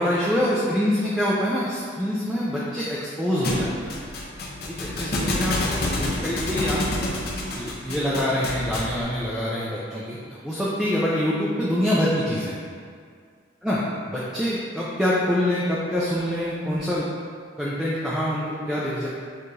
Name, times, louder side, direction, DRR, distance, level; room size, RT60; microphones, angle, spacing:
voice 1, 0.0-3.9 4.7-6.8 7.5-10.2 10.4-12.5 13.6-13.8 14.1-17.1 17.6-19.1, equal, ahead, -8 dB, 0.4 m, -25 dB
Thump thud, 3.4-9.0, left 1 dB, 50° left, 0.7 m, -28 dB
6.8 x 2.4 x 3.2 m, 2.1 s
head